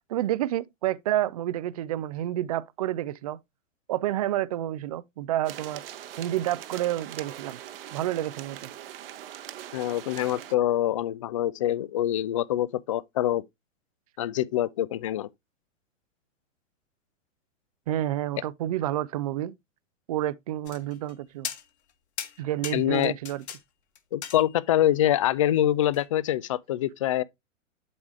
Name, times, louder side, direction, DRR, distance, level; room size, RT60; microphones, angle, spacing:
voice 1, 0.1-3.4 3.9-5.9 6.2-7.6 7.9-8.7 17.9-19.6 20.1-21.5 22.4-23.4, right 13 dB, 30° right, 0.4 m, -29 dB
sound 1, 5.4-10.5, right 12 dB, 45° right, 1.0 m, -42 dB
voice 2, 9.7-13.4 14.2-15.3 22.7-23.1 24.1-27.2, left 12 dB, 25° left, 0.4 m, -25 dB
sound 2, 20.7-21.1 21.4-21.9 22.2-23.6 24.0-24.8 25.9-26.1, left 8 dB, 55° left, 1.8 m, -38 dB
11.0 x 4.7 x 3.1 m
figure-of-eight pair, 105°, 39 cm